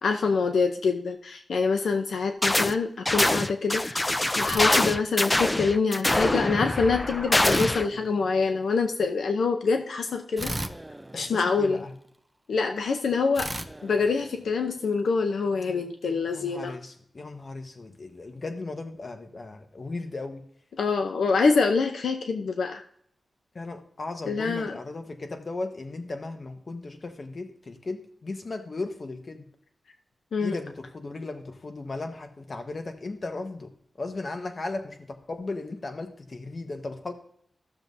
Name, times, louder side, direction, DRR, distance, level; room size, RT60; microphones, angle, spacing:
voice 1, 0.0-4.1 4.4-10.5 11.2-11.8 12.5-13.5 13.8-16.7 20.8-22.8 24.3-24.8 30.3-30.5, left 4 dB, 90° left, 6 dB, 0.7 m, -25 dB
sound 1, 2.4-2.8 3.1-7.9, left 1 dB, 20° left, 0.4 m, -24 dB
sound 2, 4.4-5.5 7.4-8.8 10.4-12.1 13.3-14.9, right 1 dB, 15° right, 0.7 m, -37 dB
voice 2, 11.1-11.9 16.3-20.4 23.5-29.5 30.4-33.7 34.0-37.1, left 3 dB, 45° left, 6 dB, 1.2 m, -36 dB
14.0 x 7.0 x 2.7 m, 0.66 s
wide cardioid pair, 80°, 0 cm